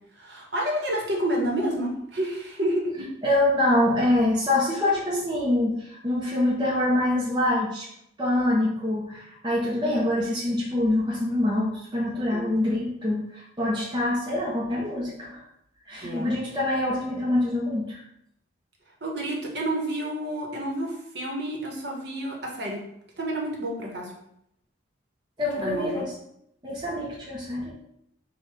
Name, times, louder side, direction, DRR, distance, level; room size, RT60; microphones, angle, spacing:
voice 1, 0.1-3.1 12.3-12.5 16.0-16.3 19.0-22.8 23.2-24.1 25.6-26.0, right 1 dB, 55° right, -1 dB, 1.0 m, -29 dB
voice 2, 3.2-7.9 8.2-15.4 15.9-18.0 25.4-26.1 26.6-27.7, left 1 dB, 25° right, -5 dB, 0.7 m, -25 dB
4.6 x 2.3 x 4.8 m, 0.75 s
head